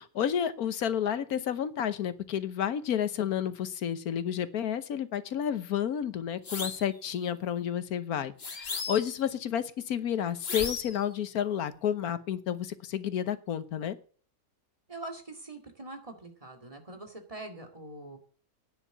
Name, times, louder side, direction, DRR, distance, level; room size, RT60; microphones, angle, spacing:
voice 1, 0.0-14.0, left 9 dB, 80° left, 1.4 m, -31 dB
sound 1, 6.4-6.9 8.4-9.2 10.4-11.0, left 4 dB, 45° left, 1.7 m, -35 dB
voice 2, 14.9-18.2, right 2 dB, 25° right, 2.2 m, -43 dB
10.0 x 7.4 x 8.0 m
omnidirectional pair, 1.5 m